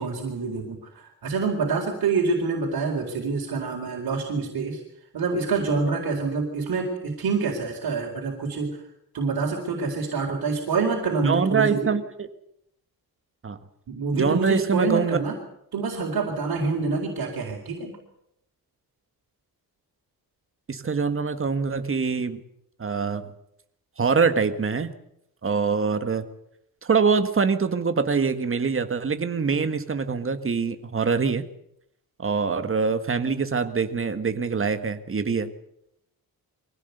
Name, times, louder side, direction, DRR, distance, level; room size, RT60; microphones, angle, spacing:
voice 1, 0.0-4.8 5.1-8.8 9.1-11.9 13.9-15.4 15.7-18.0, right 4 dB, 75° right, 0 dB, 4.3 m, -26 dB
voice 2, 11.2-12.3 13.4-13.6 14.1-15.2 20.7-22.4 22.8-23.3 24.0-24.9 25.4-26.2 26.8-31.4 32.2-35.5, right 5 dB, 35° right, 9 dB, 1.7 m, -24 dB
24.0 x 16.5 x 8.2 m, 0.77 s
wide cardioid pair, 140°, 37 cm